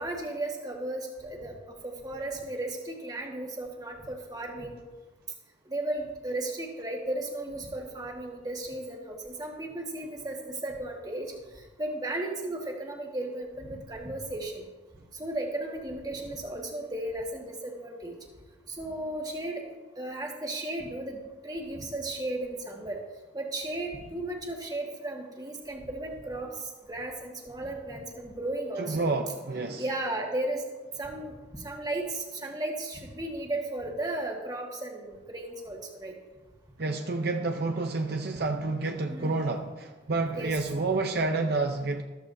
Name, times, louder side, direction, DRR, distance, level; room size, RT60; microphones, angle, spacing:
voice 1, 0.0-1.5 1.8-4.8 5.7-11.3 11.8-14.6 15.2-18.1 18.7-19.7 20.0-23.0 23.3-26.5 26.9-29.0 29.8-30.6 31.0-36.1 39.1-39.3 40.3-40.5, right 1 dB, 20° right, 0 dB, 1.6 m, -35 dB
voice 2, 28.8-29.8 36.8-42.0, right 3 dB, 55° right, 4 dB, 0.7 m, -29 dB
13.5 x 13.5 x 2.7 m, 1.2 s
head